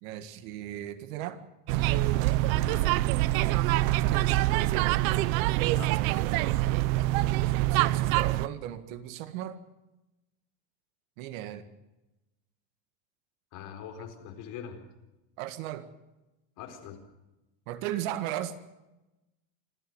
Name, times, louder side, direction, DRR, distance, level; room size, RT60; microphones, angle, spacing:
voice 1, 0.0-1.5 4.1-4.5 7.6-9.6 11.2-11.7 15.4-15.9 17.7-18.6, right 12 dB, 75° right, 11 dB, 1.9 m, -36 dB
sound 1, 1.7-8.5, right 16 dB, 90° right, 0.9 m, -25 dB
voice 2, 13.5-14.8 16.6-17.0, left 8 dB, 50° left, 4 dB, 4.4 m, -42 dB
26.5 x 13.5 x 8.0 m, 1.0 s
cardioid pair, 165°, 40 cm